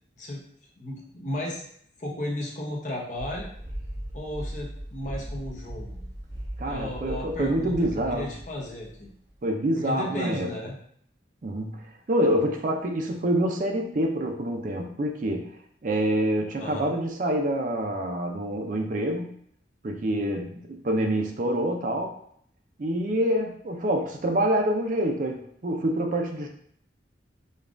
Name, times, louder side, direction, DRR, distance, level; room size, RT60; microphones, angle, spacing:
voice 1, 0.8-1.7 2.0-3.5 4.1-6.0 6.6-7.7 8.1-9.1 9.8-10.8 16.6-16.9, left 1 dB, 40° left, -1 dB, 0.7 m, -34 dB
sound 1, 3.2-9.3, right 1 dB, 20° right, 1.2 m, -38 dB
voice 2, 6.6-8.3 9.4-10.5 11.4-15.6 15.8-19.3 19.8-22.2 22.8-26.5, right 1 dB, 45° right, 3 dB, 0.4 m, -26 dB
5.2 x 2.3 x 2.5 m, 0.66 s
head